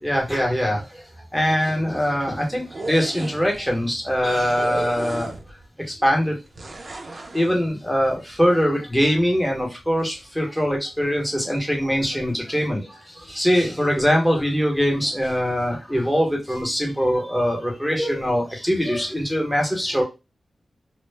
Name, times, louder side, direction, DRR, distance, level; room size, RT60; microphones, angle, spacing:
voice 1, 0.0-1.0 1.3-5.3 6.0-6.3 7.3-20.0, equal, 5° left, 0 dB, 0.8 m, -22 dB
sound 1, 2.6-3.6 4.6-5.6 6.5-7.5, right 2 dB, 45° right, 0.4 m, -33 dB
2.0 x 2.0 x 3.2 m, 0.26 s
wide cardioid pair, 110°, 0 cm